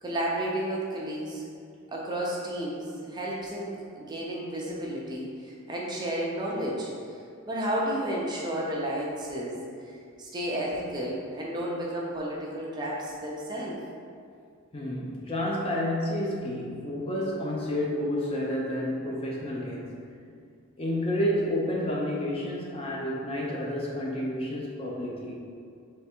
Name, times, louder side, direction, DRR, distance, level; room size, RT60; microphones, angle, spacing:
voice 1, 0.0-1.4 1.9-7.2 7.5-9.6 9.8-13.8, right 1 dB, 20° right, -4 dB, 0.5 m, -32 dB
voice 2, 14.7-19.9 20.8-25.4, left 1 dB, 25° left, -3 dB, 0.5 m, -30 dB
3.5 x 3.3 x 4.3 m, 2.3 s
head